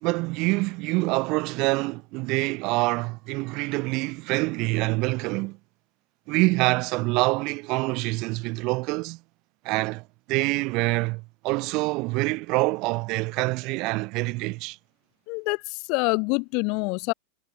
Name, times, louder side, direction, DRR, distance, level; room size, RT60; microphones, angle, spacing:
voice 1, 0.0-5.6 6.3-9.2 9.6-14.8, right 25 dB, 40° right, 0.5 m, -26 dB
voice 2, 15.3-17.1, left 33 dB, 45° left, 0.6 m, -26 dB
figure-of-eight pair, 90°, 0 cm